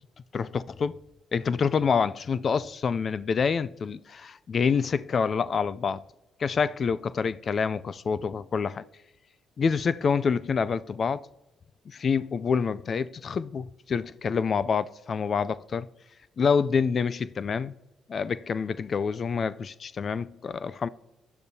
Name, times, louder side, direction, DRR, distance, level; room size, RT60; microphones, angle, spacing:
voice 1, 0.3-1.0 1.3-6.0 6.4-8.8 9.6-11.3 11.9-15.9 16.4-17.7 18.1-20.9, left 6 dB, 45° left, 0.3 m, -27 dB
16.0 x 10.0 x 2.8 m
cardioid pair, 90°, 0 cm